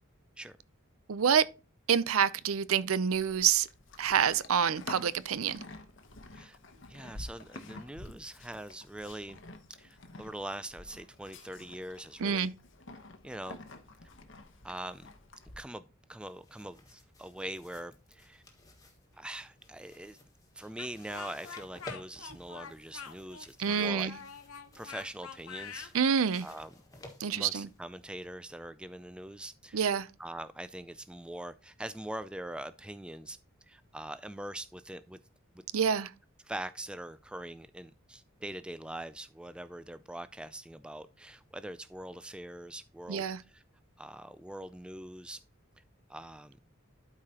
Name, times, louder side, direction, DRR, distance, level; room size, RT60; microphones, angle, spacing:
voice 1, 1.1-1.4 1.9-3.7 4.0-5.6 12.2-12.5 23.6-24.2 25.9-26.5 27.2-27.7 29.7-30.1 35.7-36.1 43.1-43.4, right 7 dB, 85° right, 0.5 m, -27 dB
Livestock farm animals working animals, 3.1-15.6, left 2 dB, 60° left, 1.0 m, -49 dB
voice 2, 6.9-9.4 9.8-12.5 13.2-13.6 14.6-15.1 15.6-18.4 19.1-20.2 20.6-24.1 24.7-25.9 26.4-26.7 27.3-29.8 30.2-33.4 33.7-35.2 35.5-35.6 36.4-43.6 44.0-45.4 46.1-46.6, right 1 dB, 5° right, 0.3 m, -43 dB
sound 1, 16.2-28.3, left 1 dB, 15° left, 1.5 m, -54 dB
Speech, 20.8-25.9, left 7 dB, 90° left, 0.8 m, -45 dB
12.0 x 4.9 x 2.9 m
head